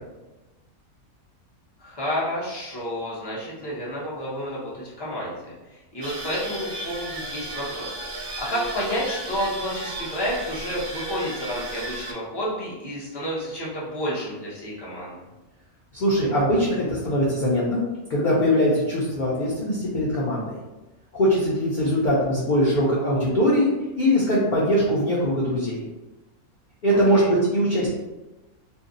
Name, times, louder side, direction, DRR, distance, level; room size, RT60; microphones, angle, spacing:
voice 1, 1.8-5.4 5.7-15.1 26.9-27.3, equal, 20° left, -7 dB, 0.8 m, -30 dB
sound 1, 6.0-12.1, right 1 dB, 60° right, 0.8 m, -34 dB
voice 2, 15.9-17.8 18.1-20.5 21.1-25.8 26.8-27.9, equal, 50° left, -7 dB, 0.6 m, -21 dB
2.6 x 2.2 x 3.8 m, 1.1 s
omnidirectional pair, 1.5 m